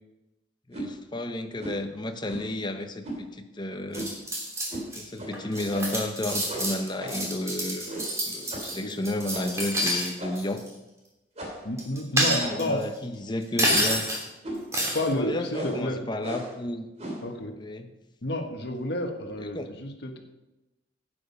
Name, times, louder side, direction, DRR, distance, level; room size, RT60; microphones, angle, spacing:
voice 1, 0.7-4.1 4.9-7.9 8.2-10.6 12.1-14.1 15.1-16.9 17.6-17.9 19.5-19.7, left 1 dB, 25° left, 7 dB, 0.8 m, -32 dB
sound 1, 0.7-0.9 1.6-1.8 2.3-2.6 3.0-3.2 3.9-4.2 4.7-4.9 5.2-5.3 5.7-6.1 6.5-7.4 7.9-8.2 8.5-8.7 9.3-9.6 10.2-10.6 11.4-11.7 12.4-12.8 13.6-14.0 14.4-14.7 15.5-15.8 16.2-16.6 17.0-17.3, right 1 dB, 35° right, 2.8 m, -37 dB
sound 2, 3.9-5.0 5.3-10.1 10.3-10.7 11.8-12.8 13.6-14.2 14.7-15.1, equal, 15° right, 2.7 m, -28 dB
voice 2, 11.6-12.9 14.9-16.1 17.2-17.6 18.2-20.2, left 1 dB, 60° left, 4 dB, 1.3 m, -30 dB
11.0 x 8.9 x 5.3 m, 1.0 s
head